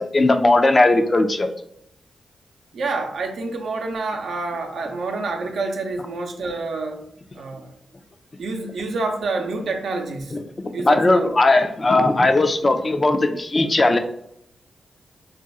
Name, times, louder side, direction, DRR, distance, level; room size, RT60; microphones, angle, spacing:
voice 1, 0.0-1.5 10.3-14.0, left 2 dB, 40° left, 7 dB, 0.4 m, -18 dB
voice 2, 2.7-7.0 7.3-7.7 8.4-10.4 10.7-11.3, right 3 dB, 80° right, 2 dB, 0.6 m, -27 dB
2.4 x 2.3 x 3.9 m, 0.75 s
supercardioid pair, 45°, 0 cm